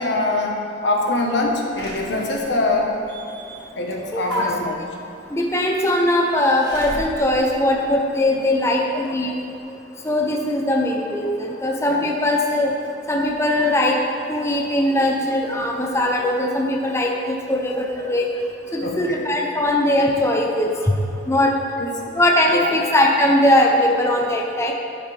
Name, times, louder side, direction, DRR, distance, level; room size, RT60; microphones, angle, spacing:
voice 1, 0.0-2.9 3.7-4.8 11.9-12.0 18.8-19.2 21.8-21.9 22.5-22.7, left 2 dB, 75° left, 0 dB, 1.1 m, -23 dB
Slam / Alarm, 1.8-8.6 9.0-9.1 9.4-9.5, right 1 dB, 60° right, 1.8 m, -40 dB
voice 2, 4.1-4.5 5.3-9.3 10.0-12.7 13.1-14.0 14.3-18.3 18.7-20.9 21.3-21.5 22.1-24.7, left 1 dB, 15° left, 0 dB, 0.7 m, -20 dB
10.5 x 9.8 x 3.4 m, 2.7 s
head